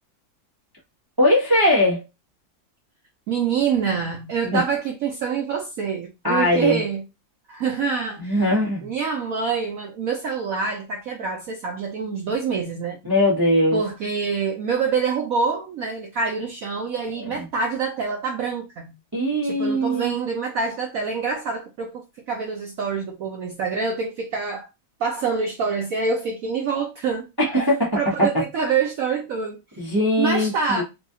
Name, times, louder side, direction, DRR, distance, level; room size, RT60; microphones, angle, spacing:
voice 1, 1.2-2.0 4.4-4.6 6.2-6.8 8.2-8.9 13.0-13.8 17.2-17.4 19.1-20.2 27.4-28.3 29.8-30.8, left 1 dB, 20° right, 0.6 m, -20 dB
voice 2, 3.3-7.0 7.5-8.4 8.8-13.0 13.7-18.9 19.4-24.7 25.0-27.3 27.9-29.6 30.2-30.8, right 5 dB, 85° right, 0.7 m, -26 dB
4.0 x 2.3 x 2.7 m
omnidirectional pair, 2.1 m